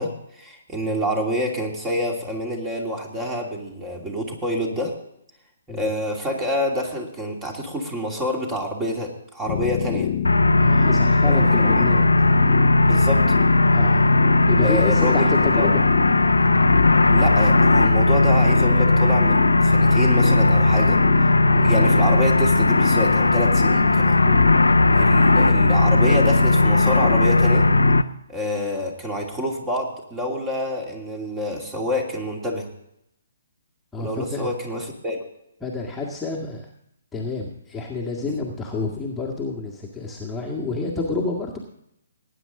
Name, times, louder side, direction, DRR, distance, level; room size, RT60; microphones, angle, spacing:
voice 1, 0.0-5.0 5.7-10.1 11.2-11.8 12.8-13.4 14.6-15.7 17.1-21.0 21.6-24.2 24.9-27.7 28.3-32.7 34.0-35.2 38.2-38.3, equal, 15° right, 1 dB, 2.7 m, -27 dB
sound 1, 9.5-28.0, left 9 dB, 40° left, 0.7 m, -25 dB
sound 2, 10.2-28.0, left 2 dB, 80° left, 0.7 m, -17 dB
voice 2, 10.5-12.1 13.7-14.1 14.5-15.8 21.5-21.7 24.2-24.5 24.8-25.0 33.9-34.5 35.6-36.7 37.1-41.6, left 3 dB, 5° left, -4 dB, 1.8 m, -29 dB
19.5 x 9.6 x 3.8 m, 0.78 s
figure-of-eight pair, 135°, 0 cm